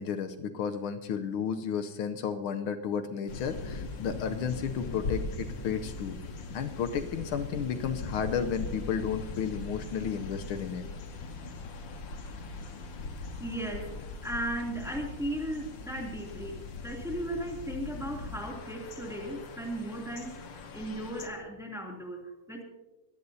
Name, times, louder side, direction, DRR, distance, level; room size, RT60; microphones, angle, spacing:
voice 1, 0.0-6.2 6.5-10.9, left 7 dB, 75° left, 8 dB, 1.6 m, -33 dB
sound 1, 3.3-21.3, left 3 dB, 60° left, 2.0 m, -40 dB
voice 2, 13.4-22.6, right 1 dB, ahead, 0 dB, 2.5 m, -36 dB
24.0 x 17.5 x 2.8 m, 1.1 s
omnidirectional pair, 2.4 m